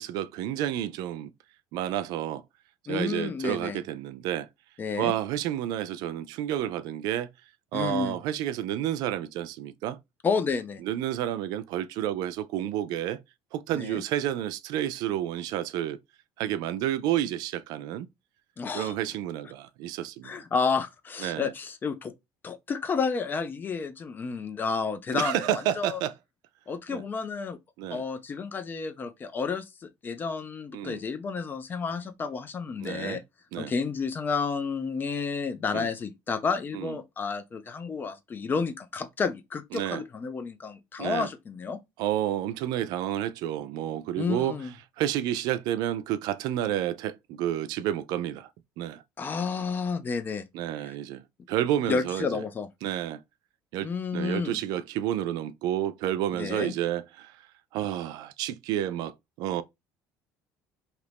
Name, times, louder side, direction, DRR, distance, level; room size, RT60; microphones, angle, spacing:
voice 1, 0.0-1.3 1.7-2.4 2.9-4.5 5.0-7.3 7.7-10.0 10.8-13.2 13.5-16.0 16.4-18.1 18.7-20.4 21.2-21.5 25.1-26.1 26.9-27.0 27.8-28.0 30.7-31.0 32.8-33.2 33.5-33.7 35.7-35.9 36.7-37.0 39.7-40.0 41.0-41.3 42.0-44.6 45.0-48.5 48.8-49.0 50.5-52.4 52.8-53.2 53.7-57.4 57.7-59.6, right 12 dB, 75° right, 0.4 m, -30 dB
voice 2, 2.9-3.8 4.8-5.1 7.7-8.2 10.2-10.8 13.7-14.0 18.6-18.9 20.2-22.1 22.4-25.5 25.8-26.0 26.7-27.6 27.9-33.2 33.6-41.8 44.2-44.7 49.2-50.5 51.9-52.7 53.8-54.6 56.4-56.7, left 5 dB, 30° left, 0.5 m, -31 dB
2.8 x 2.5 x 3.4 m
cardioid pair, 120°, 7 cm